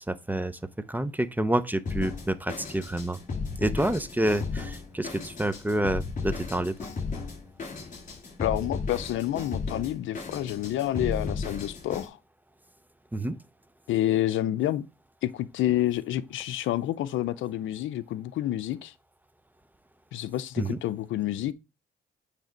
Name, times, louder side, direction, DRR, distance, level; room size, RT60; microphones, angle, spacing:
voice 1, 0.1-0.5 0.9-3.2 3.6-6.7 13.1-13.4 20.6-20.8, right 1 dB, 10° right, 0.6 m, -28 dB
Drum kit, 1.9-12.1, left 4 dB, 40° left, 3.2 m, -35 dB
voice 2, 8.4-12.2 13.9-14.8 15.2-18.9 20.1-21.5, left 13 dB, 80° left, 0.5 m, -28 dB
9.2 x 3.4 x 5.1 m
cardioid pair, 90°, 20 cm